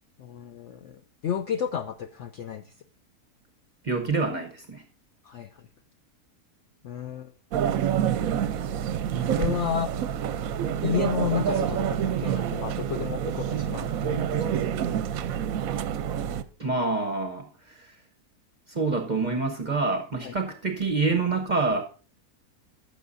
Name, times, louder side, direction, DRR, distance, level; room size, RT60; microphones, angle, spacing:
voice 1, 0.2-2.7 5.2-5.7 6.8-7.3 9.2-9.9 10.8-14.8 20.2-20.3, left 8 dB, 70° left, 8 dB, 0.7 m, -32 dB
voice 2, 3.8-4.8 16.6-17.9 18.7-21.8, right 3 dB, 40° right, 4 dB, 0.7 m, -27 dB
sound 1, 7.5-16.4, right 9 dB, 70° right, 0.9 m, -27 dB
15.5 x 6.8 x 2.6 m, 0.40 s
omnidirectional pair, 1.7 m